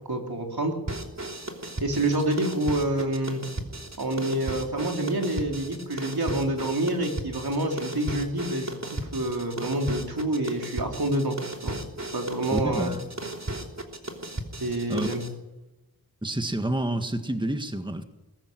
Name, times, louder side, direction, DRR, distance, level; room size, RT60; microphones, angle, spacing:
voice 1, 0.1-0.8 1.8-3.4 4.0-11.4 11.6-11.8 12.1-12.9 14.6-15.2, right 1 dB, 75° right, 2 dB, 4.0 m, -27 dB
sound 1, 0.9-15.3, right 1 dB, 45° right, 3.2 m, -36 dB
voice 2, 12.5-13.0 14.9-15.1 16.2-18.0, right 1 dB, 10° right, 7 dB, 1.7 m, -28 dB
21.5 x 14.0 x 9.7 m, 1.0 s
wide cardioid pair, 55°, 37 cm